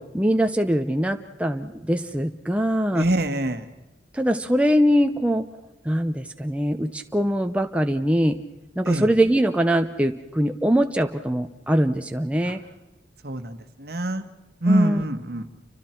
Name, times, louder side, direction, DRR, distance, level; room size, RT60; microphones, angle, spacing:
voice 1, 0.0-3.1 4.1-5.5 5.8-8.4 8.8-12.6 14.7-15.0, equal, 5° right, 5 dB, 0.7 m, -22 dB
voice 2, 2.9-3.6 8.8-9.0 13.2-14.2 14.6-15.4, right 1 dB, 60° right, 8 dB, 1.4 m, -24 dB
29.5 x 25.5 x 4.5 m, 0.98 s
head